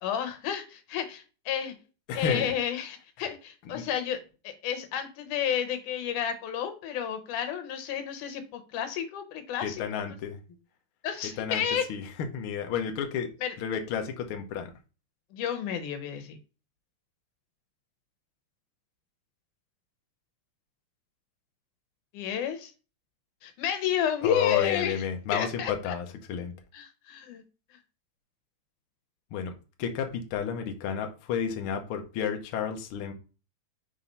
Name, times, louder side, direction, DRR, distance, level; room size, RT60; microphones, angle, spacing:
voice 1, 0.0-1.7 2.1-4.2 4.4-10.2 11.0-11.9 13.4-13.6 15.3-16.4 22.1-22.7 23.4-25.0 25.3-26.0 26.7-27.4, left 9 dB, 85° left, 8 dB, 2.5 m, -31 dB
voice 2, 2.1-2.5 3.7-3.8 9.6-10.4 11.4-11.6 11.9-12.0 12.3-13.3 13.6-14.7 24.2-26.5 29.3-29.5 29.8-33.1, left 7 dB, 65° left, 5 dB, 1.3 m, -31 dB
5.8 x 3.7 x 5.4 m, 0.34 s
omnidirectional pair, 3.5 m